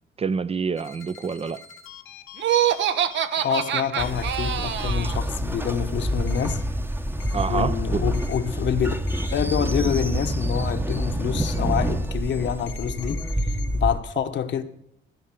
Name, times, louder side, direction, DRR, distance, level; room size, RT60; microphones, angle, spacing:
voice 1, 0.2-1.6 7.3-8.0, right 5 dB, 30° right, 0.5 m, -27 dB
sound 1, 0.8-4.9 6.3-6.5 7.2-7.5 8.1-8.4 9.1-9.3 12.7-13.7, left 9 dB, 85° left, 1.4 m, -43 dB
Laughter, 2.4-5.2, right 10 dB, 70° right, 0.9 m, -24 dB
voice 2, 3.4-6.6 7.5-8.9 9.3-13.2 13.7-14.6, left 8 dB, 65° left, 1.1 m, -27 dB
Train, 4.0-14.0, equal, 10° right, 0.9 m, -27 dB
15.0 x 5.4 x 7.6 m
cardioid pair, 90°, 20 cm